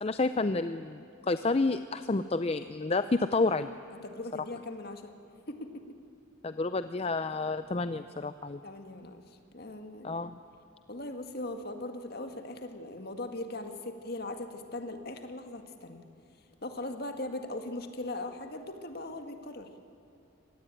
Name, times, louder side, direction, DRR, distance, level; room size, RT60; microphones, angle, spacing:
voice 1, 0.0-3.7 6.4-8.6 10.0-10.4, left 3 dB, 30° left, 11 dB, 0.5 m, -30 dB
voice 2, 4.0-5.2 5.5-5.8 8.6-9.2 9.5-10.2 10.9-16.0 16.6-19.7, left 2 dB, 50° left, 6 dB, 1.9 m, -39 dB
25.0 x 19.0 x 9.1 m, 2.7 s
head